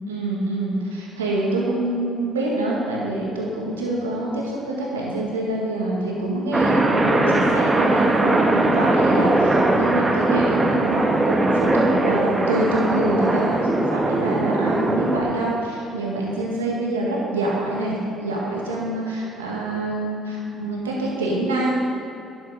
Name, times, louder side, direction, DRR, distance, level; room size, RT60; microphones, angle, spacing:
voice 1, 0.1-21.8, right 1 dB, 90° right, -3 dB, 1.7 m, -25 dB
sound 1, 6.5-15.2, right 2 dB, 25° right, 1.3 m, -20 dB
10.5 x 7.2 x 5.4 m, 2.9 s
hypercardioid pair, 50°, 0 cm